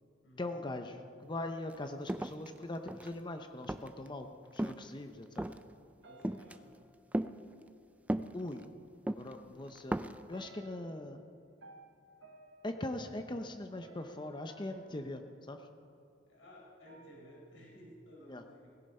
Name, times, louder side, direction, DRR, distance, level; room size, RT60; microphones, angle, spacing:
voice 1, 0.4-5.5 8.3-8.6 9.1-11.2 12.6-15.7 18.3-18.4, left 1 dB, 25° left, 6 dB, 0.6 m, -41 dB
sound 1, 1.7-1.8 2.1-3.2 3.7-4.1 4.6-4.9 5.4-5.7 6.2-6.6 7.1-7.3 8.1-8.6 9.1-9.3 9.8-10.2, right 1 dB, 10° right, 0.3 m, -35 dB
voice 2, 6.0-6.8 16.3-18.7, left 1 dB, 85° left, -3 dB, 4.7 m, -56 dB
sound 2, 6.0-7.5 8.7-8.8 9.2-9.8 10.3-16.2 16.9-17.7, right 3 dB, 80° right, 1.2 m, -60 dB
18.0 x 16.5 x 4.3 m, 2.5 s
head